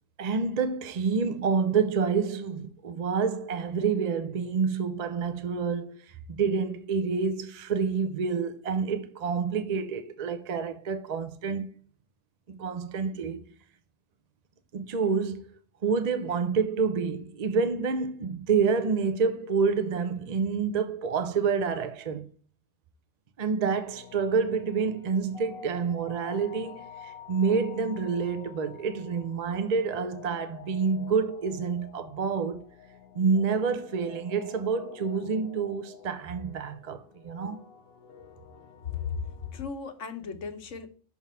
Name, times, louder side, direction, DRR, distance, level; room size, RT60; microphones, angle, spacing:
voice 1, 0.2-11.8 12.5-13.4 14.7-15.4 15.8-22.3 23.4-32.6 33.1-37.6, right 5 dB, 45° right, 0.5 m, -28 dB
sound 1, 23.8-39.6, left 8 dB, 60° left, 1.0 m, -49 dB
voice 2, 38.8-39.2 39.5-40.9, left 6 dB, 80° left, 1.4 m, -35 dB
6.1 x 3.6 x 5.5 m
omnidirectional pair, 1.3 m